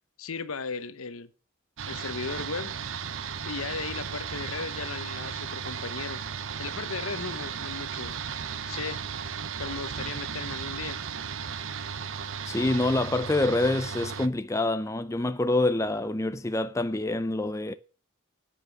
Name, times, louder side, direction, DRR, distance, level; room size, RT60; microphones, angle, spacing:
voice 1, 0.2-1.3 1.9-2.7 3.4-6.2 6.6-8.2 8.7-9.0 9.6-11.0, left 4 dB, 80° left, 1.0 m, -36 dB
sound 1, 1.8-14.3, right 6 dB, 65° right, 0.7 m, -35 dB
voice 2, 12.5-17.7, left 2 dB, 15° left, 0.4 m, -26 dB
9.0 x 8.6 x 6.0 m
head